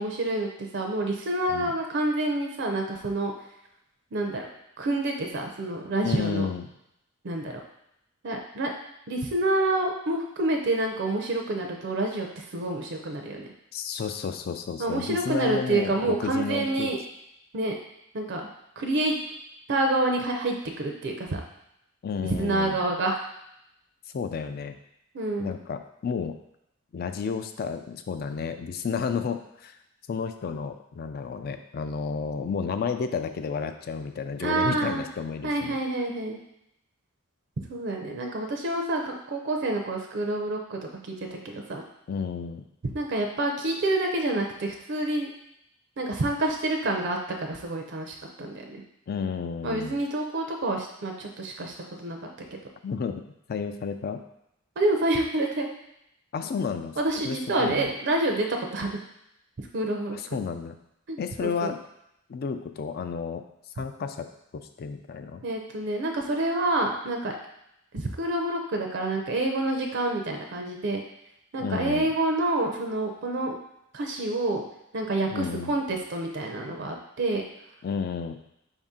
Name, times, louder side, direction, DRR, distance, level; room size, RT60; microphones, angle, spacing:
voice 1, 0.0-3.3 4.1-4.5 4.8-6.5 7.2-7.6 8.2-8.7 9.1-13.5 14.8-17.0 17.5-17.8 18.1-18.4 18.8-19.2 19.7-21.4 22.4-23.2 25.1-25.6 34.4-35.0 35.4-36.4 37.7-41.8 42.9-45.3 46.0-48.8 49.6-52.2 52.5-52.6 54.8-55.7 57.0-58.5 58.7-58.9 59.7-60.2 61.1-61.7 65.4-67.3 67.9-71.0 71.5-73.6 73.9-74.6 74.9-77.5, right 2 dB, 55° right, 2 dB, 0.5 m, -28 dB
voice 2, 6.0-6.7 13.7-16.9 22.0-22.8 24.1-24.7 25.4-26.4 26.9-29.8 30.1-35.8 42.1-42.6 49.1-50.0 52.8-53.2 53.5-54.2 56.3-57.0 57.2-57.9 60.1-60.8 61.2-61.8 62.3-63.4 63.8-64.3 64.5-65.4 71.6-72.1 75.3-75.7 77.8-78.4, left 5 dB, 45° left, 8 dB, 0.3 m, -31 dB
4.8 x 2.7 x 3.6 m, 0.80 s
head